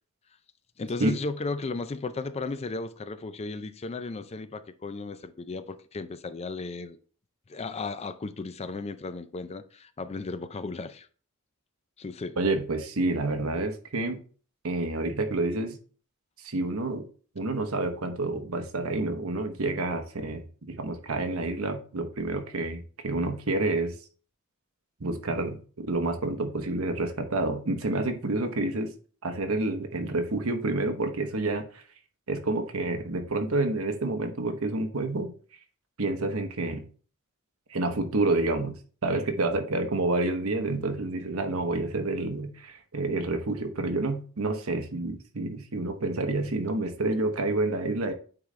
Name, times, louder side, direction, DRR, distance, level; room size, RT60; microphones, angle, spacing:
voice 1, 0.8-7.0 7.5-11.1 12.0-12.4, left 3 dB, 30° left, 0.4 m, -35 dB
voice 2, 12.4-14.2 14.6-15.8 16.4-17.1 17.3-23.9 25.0-28.9 29.2-31.8 32.3-35.3 36.0-36.9 37.7-38.8 39.0-48.1, right 2 dB, 75° right, 1.0 m, -29 dB
8.8 x 3.8 x 3.2 m
head